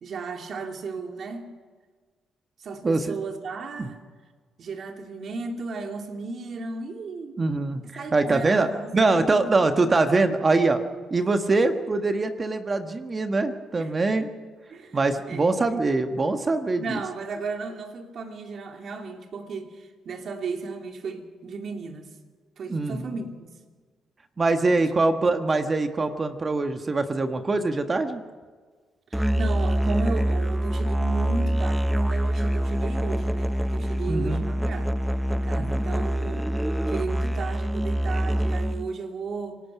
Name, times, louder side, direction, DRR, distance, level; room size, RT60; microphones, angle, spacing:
voice 1, 0.0-1.5 2.6-4.0 4.6-7.4 8.0-9.5 9.9-10.0 13.8-14.0 14.7-15.0 15.3-15.5 16.8-22.1 22.6-23.5 24.7-24.8 29.1-34.9 35.3-36.5 36.9-39.6, right 4 dB, 55° right, 2.9 m, -35 dB
voice 2, 2.8-3.1 3.8-3.9 7.4-7.8 8.1-10.8 11.1-14.3 14.9-17.0 22.7-23.1 24.4-28.2 34.1-34.4 35.5-35.8, right 3 dB, 30° right, 1.4 m, -23 dB
Musical instrument, 29.1-38.9, right 1 dB, 5° right, 0.7 m, -25 dB
26.0 x 19.0 x 6.0 m
cardioid pair, 90°, 0 cm